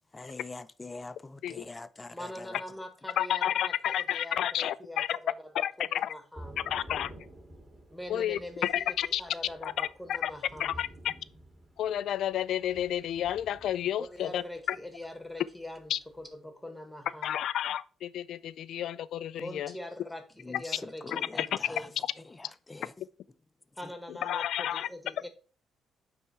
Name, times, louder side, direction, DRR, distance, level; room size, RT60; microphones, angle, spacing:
voice 1, 0.1-2.6 20.4-21.9 22.4-22.9, left 3 dB, 20° left, 0.6 m, -44 dB
voice 2, 2.1-6.5 7.9-10.7 14.0-17.4 19.4-22.0 23.7-25.3, left 1 dB, ahead, 1.6 m, -43 dB
voice 3, 3.2-5.2 5.5-6.1 6.7-7.1 8.1-9.2 9.6-10.3 10.6-11.1 11.8-14.4 14.7-14.8 15.9-16.0 17.2-19.7 21.1-21.5 24.2-24.9, left 11 dB, 75° left, 0.3 m, -31 dB
Thunder / Rain, 6.3-16.3, right 1 dB, 20° right, 3.2 m, -51 dB
8.9 x 3.5 x 4.3 m
cardioid pair, 90°, 0 cm